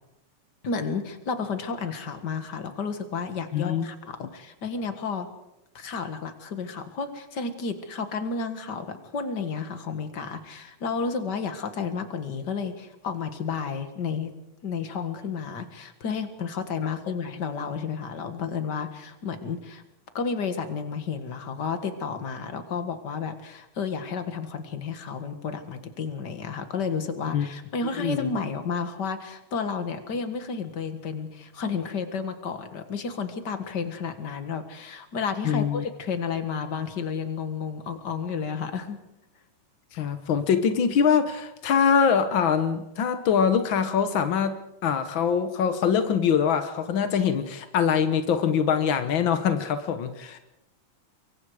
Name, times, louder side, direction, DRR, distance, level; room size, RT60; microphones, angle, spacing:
voice 1, 0.6-5.3 5.7-14.3 14.6-19.8 20.1-39.0, left 5 dB, 40° left, 8 dB, 1.7 m, -31 dB
voice 2, 3.5-3.8 4.2-4.3 27.3-27.5 28.0-28.3 35.4-35.8 39.9-50.4, left 7 dB, 85° left, 9 dB, 1.0 m, -23 dB
25.0 x 23.5 x 4.9 m, 0.89 s
omnidirectional pair, 3.9 m